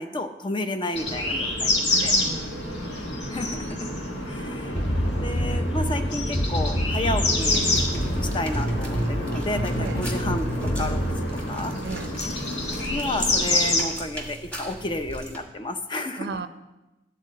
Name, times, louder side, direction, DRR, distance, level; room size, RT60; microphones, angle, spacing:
voice 1, 0.0-2.1 3.3-3.9 4.3-4.7 5.2-7.6 8.3-10.5 10.8-11.7 12.9-16.3, left 1 dB, 30° left, 7 dB, 0.6 m, -31 dB
sound 1, 1.0-13.8, left 2 dB, 75° left, 1.6 m, -28 dB
voice 2, 1.9-3.1 9.8-10.0 11.8-12.1 16.2-16.5, right 4 dB, 65° right, 10 dB, 0.5 m, -35 dB
sound 2, 4.7-11.1, equal, 45° left, 1.4 m, -27 dB
sound 3, 7.4-15.4, equal, 5° left, 1.3 m, -39 dB
11.0 x 4.1 x 7.5 m, 1.0 s
head